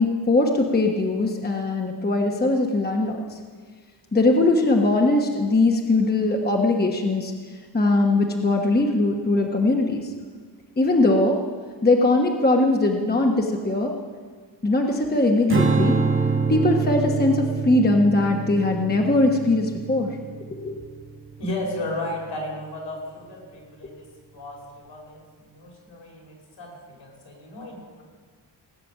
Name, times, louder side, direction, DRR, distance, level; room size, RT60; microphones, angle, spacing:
voice 1, 0.0-3.4 4.1-7.3 7.7-10.1 10.8-11.4 11.8-13.9 14.6-16.0 16.5-20.2 20.5-20.7, left 2 dB, 20° left, 1 dB, 1.2 m, -20 dB
Strum, 15.5-21.9, right 4 dB, 30° right, 1.4 m, -26 dB
voice 2, 21.4-28.0, left 1 dB, 75° left, -2 dB, 5.2 m, -34 dB
18.5 x 6.9 x 8.9 m, 1.6 s
wide cardioid pair, 130°, 44 cm